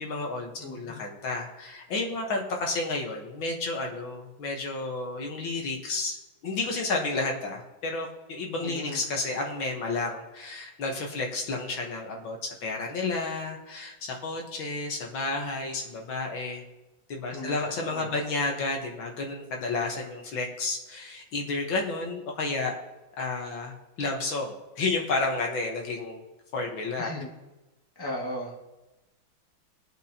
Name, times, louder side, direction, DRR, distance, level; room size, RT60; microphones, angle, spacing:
voice 1, 0.0-6.2 6.4-16.6 17.1-22.7 23.2-26.2 26.5-27.1, left 3 dB, 70° left, 1 dB, 2.0 m, -31 dB
voice 2, 0.6-1.0 8.6-9.0 17.3-18.2 27.0-27.3 28.0-28.6, left 1 dB, 10° left, -3 dB, 1.9 m, -37 dB
22.5 x 8.1 x 2.9 m, 1.1 s
omnidirectional pair, 2.2 m